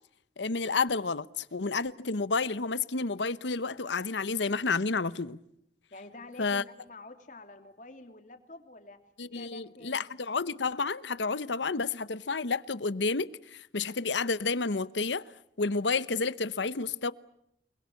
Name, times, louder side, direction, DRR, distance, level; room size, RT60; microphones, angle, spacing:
voice 1, 0.4-5.4 6.4-6.6 9.2-15.2 15.6-17.1, left 4 dB, 90° left, 0.9 m, -30 dB
voice 2, 5.9-9.0 9.3-10.0, left 2 dB, 45° left, 2.9 m, -48 dB
29.0 x 21.0 x 8.3 m
head